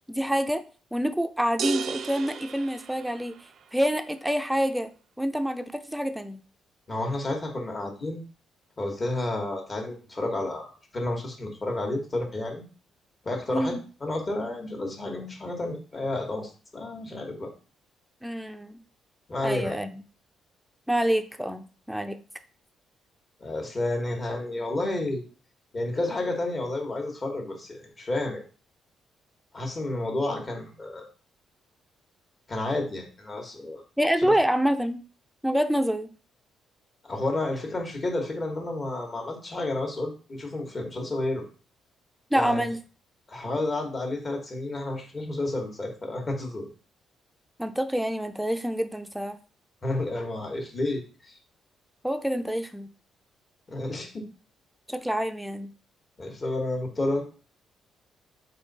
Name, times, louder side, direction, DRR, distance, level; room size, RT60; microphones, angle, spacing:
voice 1, 0.1-0.6 0.9-3.3 3.7-6.4 13.5-13.8 18.2-18.8 19.4-20.0 20.9-22.2 34.0-35.0 35.4-36.1 42.3-42.8 47.6-49.4 52.0-52.9 54.9-55.7, equal, 5° right, 7 dB, 0.5 m, -27 dB
sound 1, 1.6-3.6, right 6 dB, 65° right, 0.4 m, -34 dB
voice 2, 6.9-8.2 8.8-10.7 10.9-12.6 13.2-17.5 19.3-19.8 23.4-25.2 25.7-28.4 29.5-31.1 32.5-33.8 34.2-34.3 37.0-41.4 42.3-42.6 43.3-46.7 49.8-51.4 53.7-54.2 56.2-57.2, left 2 dB, 40° left, 2 dB, 1.4 m, -31 dB
3.5 x 2.6 x 4.0 m, 0.37 s
supercardioid pair, 60°, 0 cm